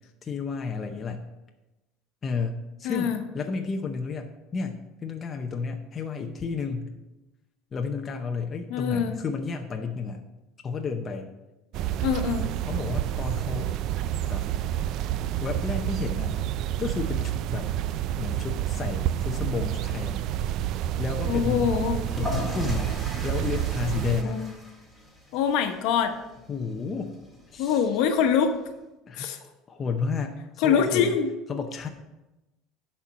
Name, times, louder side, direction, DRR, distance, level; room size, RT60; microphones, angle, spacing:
voice 1, 0.2-1.3 2.2-2.5 2.8-6.9 7.7-10.2 10.6-11.3 12.7-13.7 14.3-14.4 15.4-16.4 16.8-17.7 18.2-20.2 21.0-21.7 22.2-22.9 23.2-24.4 26.5-27.1 27.5-28.0 29.1-31.1 31.5-31.9, left 5 dB, 25° left, 3 dB, 0.7 m, -32 dB
voice 2, 2.8-3.2 8.7-9.1 12.0-12.5 21.3-22.0 24.2-24.5 25.3-26.2 27.6-28.6 29.2-29.4 30.6-31.3, left 7 dB, 65° left, 6 dB, 1.1 m, -24 dB
sound 1, 11.7-24.2, right 12 dB, 50° right, 0.3 m, -29 dB
sound 2, 21.9-28.7, left 1 dB, 5° right, 2.0 m, -40 dB
11.0 x 4.4 x 6.1 m, 1.0 s
cardioid pair, 150°, 0 cm